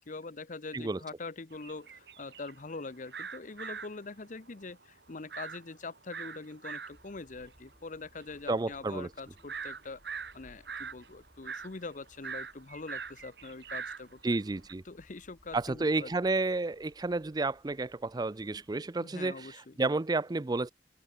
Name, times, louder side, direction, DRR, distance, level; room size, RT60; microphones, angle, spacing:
voice 1, 0.0-14.4 14.8-16.1 19.0-19.8, left 3 dB, 45° left, 0.9 m, -44 dB
sound 1, 1.5-14.7, right 6 dB, 65° right, 2.2 m, -43 dB
sound 2, 6.9-18.8, equal, 10° left, 4.8 m, -64 dB
voice 2, 8.5-9.1 14.2-14.8 15.5-20.7, right 3 dB, 25° right, 0.5 m, -31 dB
open air
head